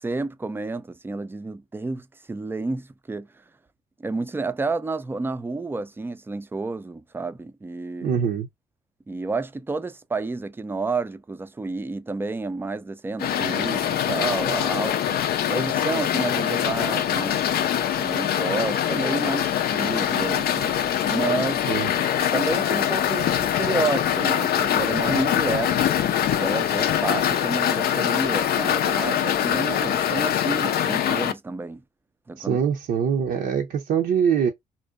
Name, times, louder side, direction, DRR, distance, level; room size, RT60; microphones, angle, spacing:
voice 1, 0.0-3.3 4.0-8.2 9.1-15.2 15.5-17.4 18.0-20.7 21.0-21.7 22.3-25.9 26.3-31.8 32.3-32.6, right 3 dB, 15° right, 0.4 m, -30 dB
voice 2, 8.0-8.5 21.7-21.9 32.4-34.5, right 7 dB, 65° right, 0.5 m, -23 dB
sound 1, 13.2-31.3, left 10 dB, 65° left, 0.4 m, -23 dB
2.5 x 2.1 x 2.4 m
supercardioid pair, 60°, 17 cm